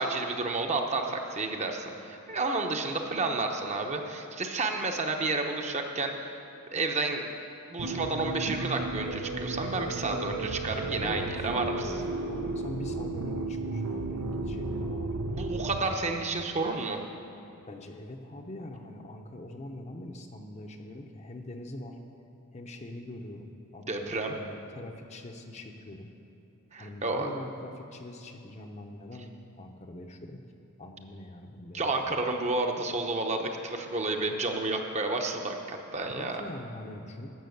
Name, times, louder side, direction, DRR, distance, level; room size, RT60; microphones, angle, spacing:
voice 1, 0.0-6.3 6.7-7.3 7.7-11.9 15.3-17.0 23.9-24.3 26.7-27.3 31.7-36.4, right 3 dB, 30° right, 3 dB, 0.8 m, -31 dB
sound 1, 7.8-15.8, right 2 dB, 90° right, 0.7 m, -34 dB
voice 2, 10.1-10.6 11.0-11.9 12.3-15.7 17.7-22.0 22.5-26.1 26.8-30.4 30.8-32.0 36.0-37.3, left 1 dB, 30° left, 4 dB, 0.7 m, -43 dB
12.0 x 6.3 x 7.9 m, 3.0 s
head